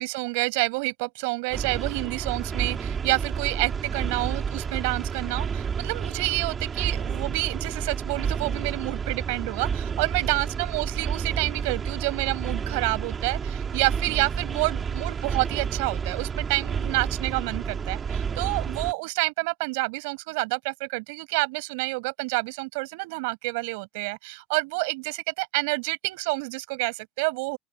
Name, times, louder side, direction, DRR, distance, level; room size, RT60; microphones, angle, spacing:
voice 1, 0.0-27.6, right 28 dB, 75° right, 5.9 m, -28 dB
sound 1, 1.5-18.9, right 6 dB, 25° right, 2.9 m, -30 dB
open air
supercardioid pair, 125°, 0 cm